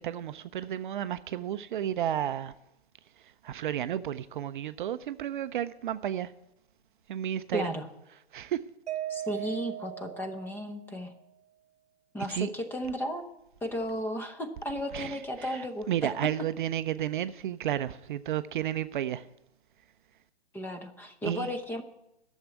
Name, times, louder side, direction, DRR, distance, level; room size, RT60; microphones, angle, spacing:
voice 1, 0.0-2.5 3.4-6.3 7.1-7.7 8.3-8.6 12.3-12.5 14.9-19.3 21.2-21.5, right 11 dB, 50° right, 0.5 m, -32 dB
voice 2, 7.5-7.9 9.1-11.1 12.1-13.3 13.6-16.1 20.5-21.8, equal, 5° left, 0.8 m, -34 dB
Mallet percussion, 8.9-11.1, right 12 dB, 85° right, 0.8 m, -38 dB
11.5 x 7.3 x 9.2 m
hypercardioid pair, 135°, 32 cm